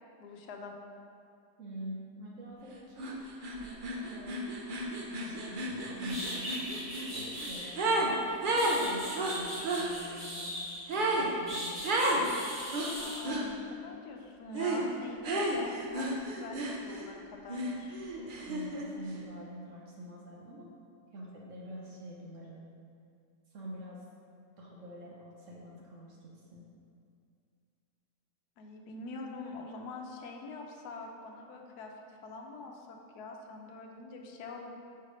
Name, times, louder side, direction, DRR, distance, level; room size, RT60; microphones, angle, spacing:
voice 1, 0.2-0.7 13.0-18.0 28.6-34.7, left 3 dB, 75° left, 2 dB, 1.2 m, -45 dB
voice 2, 1.6-3.2 3.6-4.4 5.1-8.1 8.5-10.6 11.0-12.3 18.4-20.7 21.1-22.7 23.5-24.0 24.6-26.6, right 1 dB, 60° right, -3 dB, 1.0 m, -46 dB
sound 1, 3.0-3.1 3.4-8.1 8.4-9.9 10.9-11.3 11.8-12.2 12.7-13.5 14.5-14.8 15.2-17.1 17.5-18.9, right 1 dB, 85° right, 0.4 m, -32 dB
sound 2, 5.7-5.8 6.1-7.7 8.3-10.9 11.5-13.2, equal, 25° right, 1.5 m, -40 dB
5.6 x 3.3 x 5.0 m, 2.4 s
omnidirectional pair, 1.8 m